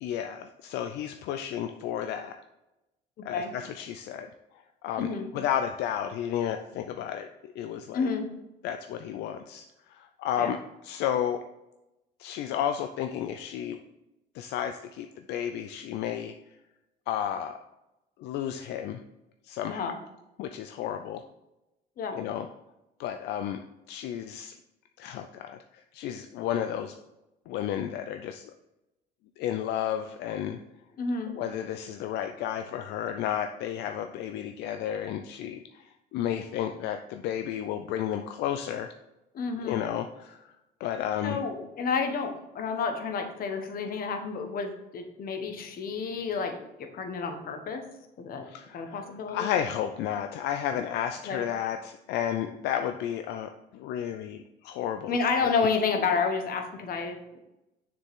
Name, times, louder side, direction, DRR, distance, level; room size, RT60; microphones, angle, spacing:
voice 1, 0.0-2.4 3.2-4.3 4.8-8.1 8.6-10.6 10.8-11.4 12.2-13.8 14.3-16.3 17.1-17.6 18.2-19.0 19.4-19.9 20.4-21.2 22.1-22.5 23.0-23.6 23.9-24.5 25.0-25.6 25.9-26.9 27.5-28.5 29.4-30.6 31.3-38.9 39.6-40.5 40.8-41.4 48.5-49.0 49.3-55.2, left 10 dB, 85° left, 7 dB, 0.5 m, -32 dB
voice 2, 5.0-5.3 7.9-8.3 10.4-10.5 19.7-20.0 22.0-22.2 31.0-31.3 39.3-39.8 41.2-47.8 48.2-48.5 48.7-49.5 51.2-51.4 55.1-57.4, left 5 dB, 60° left, 5 dB, 1.4 m, -30 dB
6.8 x 6.7 x 3.7 m, 0.95 s
cardioid pair, 110°, 17 cm